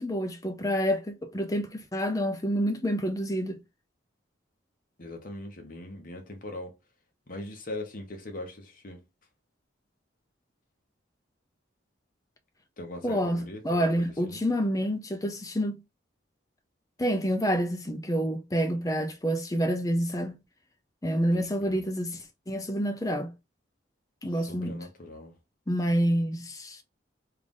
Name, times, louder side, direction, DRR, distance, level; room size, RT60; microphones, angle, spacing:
voice 1, 0.0-3.6 13.0-15.8 17.0-20.4 21.0-23.3 24.2-24.8 25.7-26.8, equal, 15° left, 0.5 m, -28 dB
voice 2, 5.0-6.7 7.3-9.0 12.8-14.4 21.3-21.8 24.3-25.3, left 1 dB, 45° left, 0.9 m, -41 dB
3.3 x 2.6 x 3.7 m
head